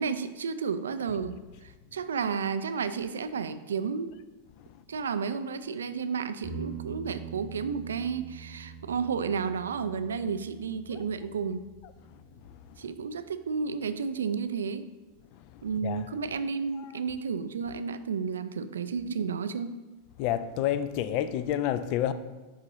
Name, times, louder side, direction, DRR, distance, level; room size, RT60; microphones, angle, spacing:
voice 1, 0.0-4.1 4.9-11.6 12.8-14.9 15.6-19.7, right 6 dB, 65° right, 0.3 m, -32 dB
sound 1, 6.4-14.0 17.1-17.2, right 5 dB, 70° left, 2.1 m, -45 dB
voice 2, 15.5-16.1 16.8-16.9 20.2-22.1, left 11 dB, 45° left, 0.3 m, -30 dB
10.5 x 3.8 x 3.0 m
figure-of-eight pair, 90°, 0 cm